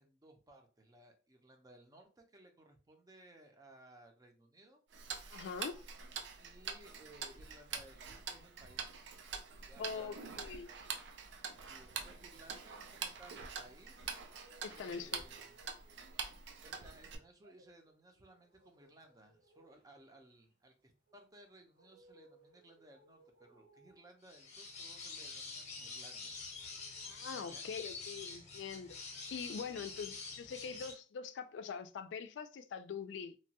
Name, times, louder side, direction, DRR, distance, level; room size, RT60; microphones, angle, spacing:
voice 1, 0.0-4.8 6.4-9.1 9.7-10.5 11.6-14.2 14.7-15.7 16.6-26.3 27.5-27.7 29.8-29.9, right 1 dB, 20° right, 0.5 m, -60 dB
Tick-tock, 4.9-17.1, right 6 dB, 80° right, 0.4 m, -45 dB
voice 2, 5.3-5.8 9.8-10.7 14.6-15.2 27.0-33.3, left 6 dB, 85° left, 0.3 m, -44 dB
sound 1, 13.1-13.7 14.1-27.5 27.7-28.8, right 1 dB, 65° right, 1.3 m, -68 dB
sound 2, 24.2-30.9, left 4 dB, 40° left, 0.7 m, -47 dB
2.9 x 2.2 x 2.8 m
head